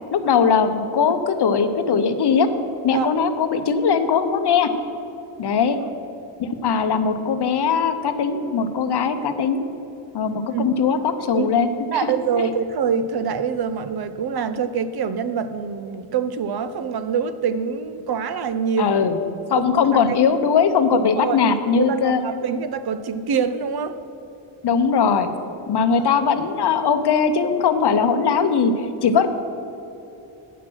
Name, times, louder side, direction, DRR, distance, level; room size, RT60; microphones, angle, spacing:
voice 1, 0.1-2.5 2.8-4.7 5.4-5.8 6.4-9.6 10.1-12.1 18.8-19.2 19.5-22.2 24.6-25.3 25.7-28.7 29.0-29.3, left 6 dB, 55° left, 9 dB, 0.7 m, -20 dB
voice 2, 11.9-19.0 19.6-19.7 20.9-21.4 21.8-24.0, right 6 dB, 50° right, 12 dB, 0.5 m, -25 dB
9.1 x 6.1 x 6.0 m, 2.9 s
wide cardioid pair, 115°, 49 cm